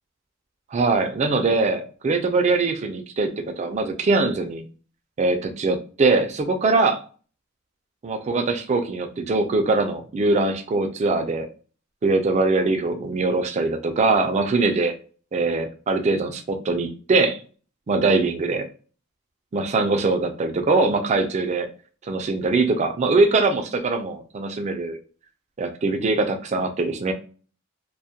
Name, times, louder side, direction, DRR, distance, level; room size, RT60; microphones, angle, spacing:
voice 1, 0.7-4.7 5.2-7.0 8.0-11.5 12.0-14.9 15.3-17.4 17.9-18.7 19.5-21.7 22.1-25.0 25.6-27.1, right 3 dB, 35° right, 5 dB, 0.3 m, -22 dB
2.2 x 2.1 x 2.7 m, 0.40 s
head